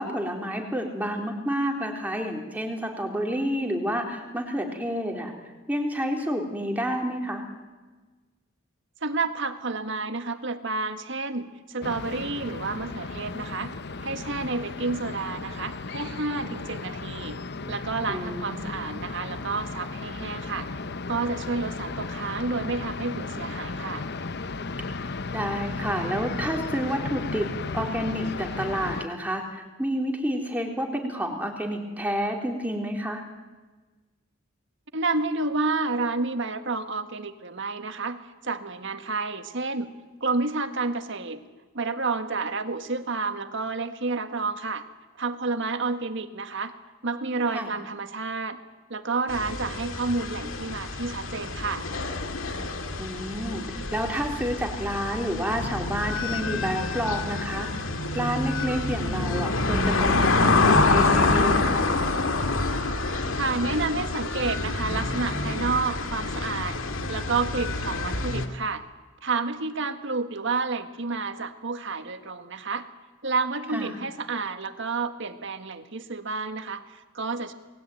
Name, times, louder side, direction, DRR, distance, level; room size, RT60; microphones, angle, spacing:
voice 1, 0.0-5.3 5.7-7.5 18.1-18.8 25.3-27.5 27.7-33.2 47.5-47.7 53.0-57.9 58.1-61.8 73.7-74.0, equal, 10° right, 2 dB, 3.7 m, -29 dB
voice 2, 9.0-13.7 14.0-20.7 21.1-24.0 34.9-39.9 40.2-41.4 41.7-44.9 45.2-46.8 47.0-48.6 48.9-51.9 63.4-66.8 67.1-68.8 69.2-72.9 73.2-77.5, right 3 dB, 60° right, 8 dB, 1.8 m, -30 dB
sound 1, 11.8-29.1, left 3 dB, 55° left, 0.9 m, -35 dB
sound 2, 49.3-68.5, left 3 dB, 70° left, 2.1 m, -27 dB
28.5 x 20.5 x 9.3 m, 1.3 s
head